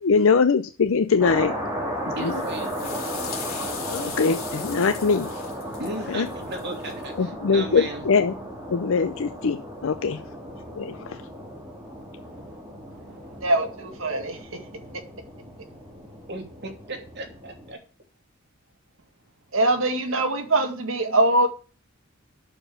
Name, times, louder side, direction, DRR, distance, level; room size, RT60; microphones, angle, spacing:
voice 1, 0.0-1.5 2.0-2.4 3.9-5.3 6.1-6.3 7.2-8.3 8.7-10.2 10.8-11.2, left 5 dB, 70° left, 10 dB, 0.5 m, -22 dB
sound 1, 1.2-17.7, equal, 15° right, 3.0 m, -35 dB
voice 2, 1.8-2.7 5.8-8.1 11.9-13.5 14.0-14.9 16.3-17.8, right 2 dB, 55° right, 3 dB, 2.8 m, -38 dB
sound 2, 2.2-7.0, left 7 dB, 45° left, 3.5 m, -39 dB
voice 3, 13.4-14.4 19.5-21.5, right 2 dB, 70° right, 5 dB, 2.1 m, -22 dB
8.8 x 7.0 x 7.6 m, 0.37 s
head